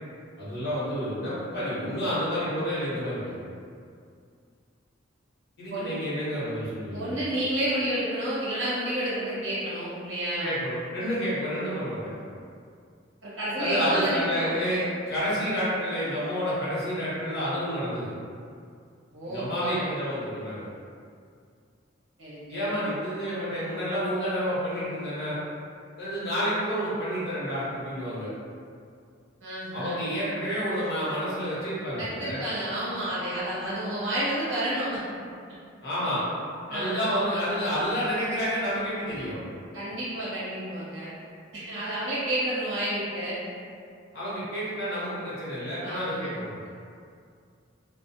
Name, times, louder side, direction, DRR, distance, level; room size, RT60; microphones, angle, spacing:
voice 1, 0.4-3.4 5.6-7.2 10.4-12.2 13.6-18.1 19.3-20.7 22.5-25.4 26.0-28.3 29.7-32.4 35.8-36.2 36.7-39.4 44.1-46.7, equal, 55° left, -10 dB, 1.0 m, -29 dB
voice 2, 6.9-10.5 13.2-14.5 19.1-19.9 22.2-22.7 29.4-30.0 32.0-35.0 36.7-37.1 39.7-41.1 41.5-43.4 45.8-46.3, right 1 dB, 80° right, -10 dB, 1.1 m, -30 dB
2.2 x 2.2 x 2.7 m, 2.3 s
head